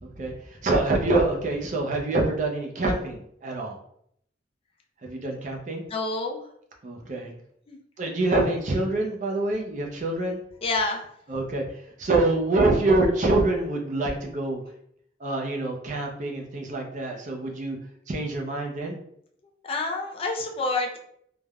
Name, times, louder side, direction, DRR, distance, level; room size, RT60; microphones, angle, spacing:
voice 1, 0.0-3.8 5.0-5.8 6.8-7.3 8.0-10.4 11.3-11.7 12.0-14.6 15.2-17.8 18.1-19.0, right 2 dB, 45° right, 1 dB, 0.5 m, -25 dB
voice 2, 5.9-6.4 7.7-7.8 10.6-11.0 19.6-21.0, left 3 dB, 30° left, 2 dB, 0.4 m, -28 dB
3.2 x 2.1 x 2.3 m, 0.69 s
head